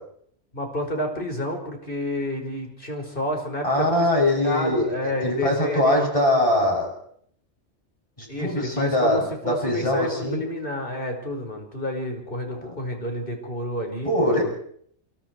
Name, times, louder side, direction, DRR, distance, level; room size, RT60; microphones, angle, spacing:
voice 1, 0.5-4.1 4.4-6.4 8.3-14.1, left 1 dB, 45° left, 3 dB, 5.6 m, -29 dB
voice 2, 3.6-6.9 8.2-10.4 12.6-12.7 14.0-14.4, left 1 dB, 25° left, 0 dB, 8.1 m, -22 dB
28.0 x 27.5 x 4.7 m, 0.65 s
omnidirectional pair, 1.2 m